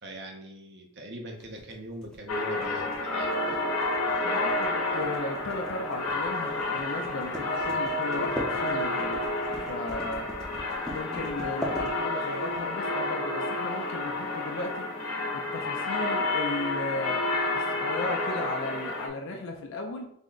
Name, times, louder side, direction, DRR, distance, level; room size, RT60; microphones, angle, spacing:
voice 1, 0.0-3.7, right 1 dB, 50° right, 1 dB, 0.5 m, -42 dB
sound 1, 1.4-12.4, equal, 5° left, 0.5 m, -39 dB
sound 2, 2.3-19.1, left 2 dB, 90° left, 0.7 m, -30 dB
voice 2, 4.2-9.3 9.7-10.3 10.9-14.9 15.3-17.2 17.5-20.0, left 2 dB, 60° left, 2 dB, 0.4 m, -36 dB
3.4 x 2.1 x 3.8 m, 0.72 s
head